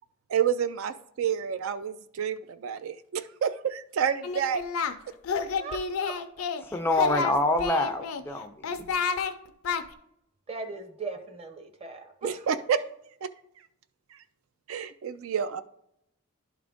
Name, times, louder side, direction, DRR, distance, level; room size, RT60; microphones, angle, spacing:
voice 1, 0.3-4.6 12.2-12.8 14.7-15.6, right 8 dB, 70° right, 12 dB, 0.3 m, -29 dB
Singing, 4.2-4.9 5.2-6.6 6.9-8.2 8.6-9.3 9.6-9.8, left 5 dB, 80° left, 0.5 m, -29 dB
voice 2, 5.6-6.1 10.5-12.5, right 4 dB, 25° right, 6 dB, 0.7 m, -38 dB
voice 3, 6.6-8.9, left 1 dB, 10° left, 6 dB, 0.3 m, -27 dB
11.0 x 3.7 x 3.5 m, 0.75 s
head